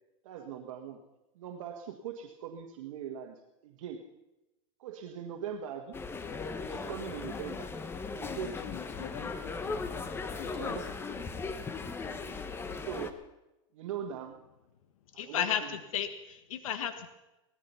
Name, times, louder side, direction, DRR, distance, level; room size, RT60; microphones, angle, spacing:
voice 1, 0.2-1.0 1.3-4.0 4.8-6.0 6.6-7.7 8.1-8.6 9.8-10.0 10.5-11.0 11.7-11.9 12.2-12.4 12.8-13.2 13.7-14.3 15.1-15.5, right 8 dB, 70° right, 2 dB, 1.7 m, -41 dB
sound 1, 5.9-13.1, left 4 dB, 15° left, 1.0 m, -38 dB
voice 2, 8.2-9.8 10.4-10.8 11.1-11.2, left 10 dB, 60° left, 6 dB, 2.4 m, -45 dB
voice 3, 15.2-17.1, left 9 dB, 80° left, 9 dB, 1.5 m, -33 dB
18.0 x 14.0 x 5.7 m, 0.98 s
supercardioid pair, 135°, 17 cm